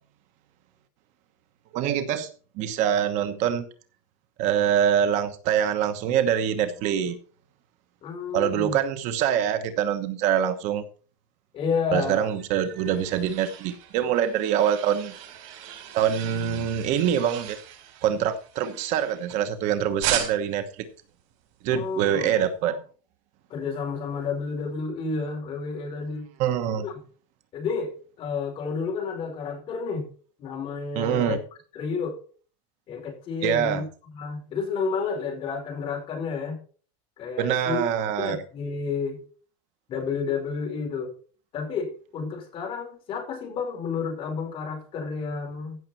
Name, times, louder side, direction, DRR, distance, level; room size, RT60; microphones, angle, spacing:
voice 1, 1.7-2.3 2.6-3.7 4.4-7.2 8.3-10.8 11.9-15.1 15.9-17.6 18.0-20.6 21.6-22.8 26.4-26.8 30.9-31.4 33.4-33.8 37.4-38.4, right 9 dB, 50° right, 10 dB, 1.2 m, -24 dB
voice 2, 8.0-8.8 11.5-12.3 21.7-22.4 23.5-26.3 26.8-27.0 27.5-30.1 30.4-31.4 31.7-32.2 32.9-33.8 34.1-36.6 37.2-37.8 38.2-39.2 39.9-41.1 41.5-45.8, left 5 dB, 35° left, 1 dB, 5.0 m, -30 dB
sound 1, 12.3-19.6 20.0-20.7, right 10 dB, 75° right, 4.6 m, -36 dB
15.5 x 6.7 x 4.4 m, 0.40 s
cardioid pair, 170°, 16 cm